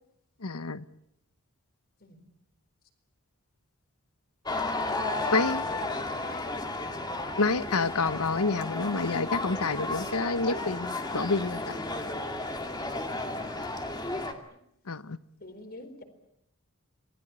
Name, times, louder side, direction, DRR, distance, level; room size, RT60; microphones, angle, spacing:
voice 1, 0.4-0.8 5.3-5.6 7.4-11.8 14.9-15.2, left 3 dB, 80° left, 1.0 m, -28 dB
sound 1, 4.5-14.3, left 2 dB, 20° left, 2.3 m, -33 dB
voice 2, 5.2-6.7 13.2-13.8 15.4-16.0, left 2 dB, 45° left, 4.3 m, -44 dB
27.0 x 20.0 x 8.9 m
head